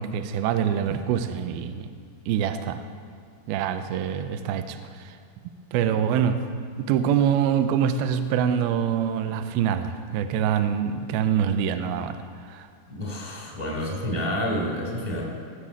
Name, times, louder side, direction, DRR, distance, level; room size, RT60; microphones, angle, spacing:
voice 1, 0.0-1.9 2.3-2.8 3.5-5.2 5.7-6.4 6.8-12.7, right 8 dB, 85° right, 9 dB, 2.2 m, -25 dB
voice 2, 12.9-15.2, equal, 15° right, -3 dB, 1.4 m, -29 dB
16.5 x 7.3 x 7.4 m, 2.1 s
omnidirectional pair, 4.9 m